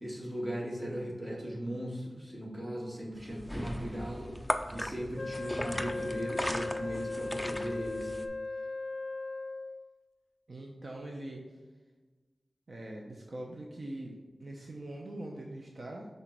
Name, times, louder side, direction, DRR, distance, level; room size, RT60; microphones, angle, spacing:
voice 1, 0.0-4.4 4.7-8.1, equal, 20° right, -4 dB, 2.0 m, -38 dB
sound 1, 3.2-8.3, equal, 5° left, 0.5 m, -37 dB
Wind instrument woodwind instrument, 5.1-9.9, left 3 dB, 65° left, 0.4 m, -38 dB
voice 2, 10.5-11.4 12.7-16.1, right 1 dB, 55° right, -1 dB, 0.9 m, -42 dB
5.8 x 4.0 x 6.1 m, 1.3 s
wide cardioid pair, 85°, 0 cm